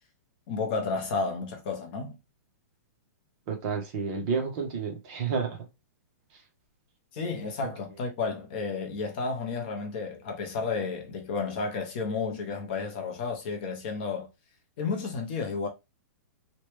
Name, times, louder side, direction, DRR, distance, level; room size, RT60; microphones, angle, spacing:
voice 1, 0.5-2.2 7.1-14.3 14.8-15.7, left 4 dB, 35° left, 0.6 m, -32 dB
voice 2, 3.5-5.7, right 5 dB, 30° right, 0.8 m, -30 dB
3.0 x 2.2 x 3.2 m
hypercardioid pair, 170°, 9 cm